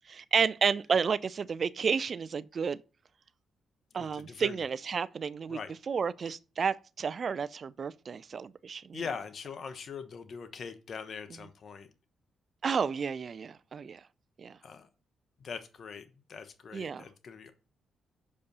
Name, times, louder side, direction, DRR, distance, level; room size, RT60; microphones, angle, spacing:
voice 1, 0.1-2.8 3.9-5.6 5.9-9.0 12.6-14.0 14.4-14.6 16.7-17.0, right 6 dB, 50° right, 0.4 m, -31 dB
voice 2, 3.9-4.7 5.5-5.7 8.9-11.9 14.6-14.9 15.4-17.5, left 6 dB, 55° left, 1.0 m, -42 dB
6.8 x 5.3 x 6.7 m
hypercardioid pair, 45°, 0 cm